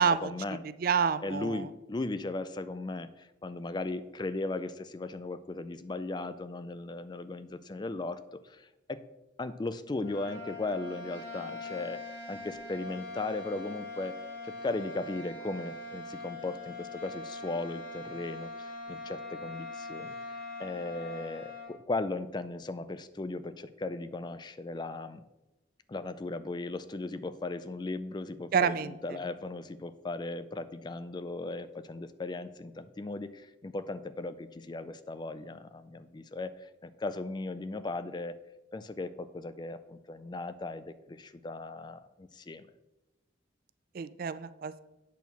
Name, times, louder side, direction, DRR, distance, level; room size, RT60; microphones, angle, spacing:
voice 1, 0.0-0.6 1.2-9.0 9.4-14.2 14.4-25.2 25.9-38.4 38.7-42.7, left 2 dB, 25° left, 12 dB, 0.4 m, -37 dB
voice 2, 0.8-1.7 28.5-29.2 43.9-44.8, right 6 dB, 50° right, 14 dB, 0.4 m, -28 dB
sound 1, 9.9-21.7, left 2 dB, 65° left, 3.3 m, -42 dB
8.3 x 4.5 x 6.8 m, 1.0 s
head